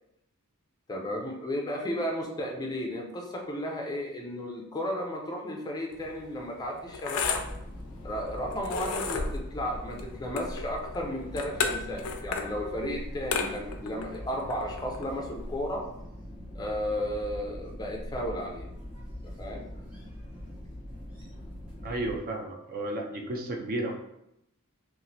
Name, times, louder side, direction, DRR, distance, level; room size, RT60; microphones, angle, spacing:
voice 1, 0.9-7.4 8.0-15.9 16.5-18.6 19.2-19.7, equal, 20° left, 1 dB, 0.4 m, -34 dB
sound 1, 5.9-15.7, left 5 dB, 80° left, 0.4 m, -35 dB
sound 2, 7.1-22.2, equal, 5° right, 1.1 m, -42 dB
voice 2, 21.8-23.9, right 1 dB, 40° right, 2 dB, 0.4 m, -33 dB
3.0 x 2.4 x 2.6 m, 0.81 s
head